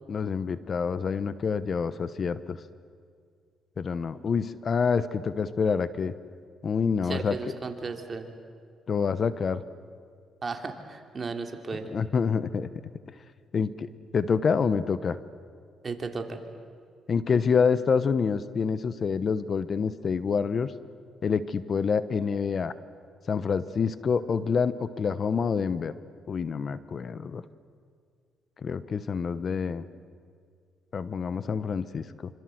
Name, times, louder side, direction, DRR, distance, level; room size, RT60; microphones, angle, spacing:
voice 1, 0.1-2.6 3.8-6.1 6.6-7.5 8.9-9.6 11.9-12.7 13.5-15.2 17.1-20.7 21.2-22.7 23.3-25.9 26.3-27.4 28.6-29.8 30.9-32.3, left 6 dB, 45° left, 15 dB, 1.0 m, -27 dB
voice 2, 7.0-8.3 10.4-11.9 15.8-16.4, right 4 dB, 35° right, 5 dB, 3.0 m, -35 dB
26.5 x 26.0 x 7.9 m, 2.2 s
cardioid pair, 90°, 0 cm